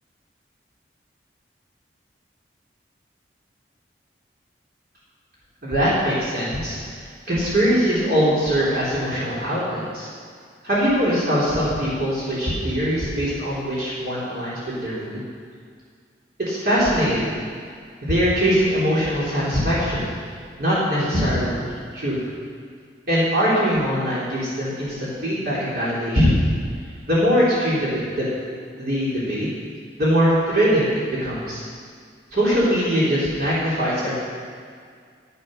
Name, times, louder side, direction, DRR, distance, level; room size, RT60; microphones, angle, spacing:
voice 1, 5.6-6.8 7.3-10.1 10.6-15.3 16.4-17.4 18.0-20.1 20.6-21.6 21.9-22.2 23.1-26.4 27.1-28.3 28.8-29.5 30.0-31.6 32.3-34.2, equal, 55° right, -8 dB, 3.6 m, -21 dB
13.0 x 9.5 x 6.5 m, 2.1 s
head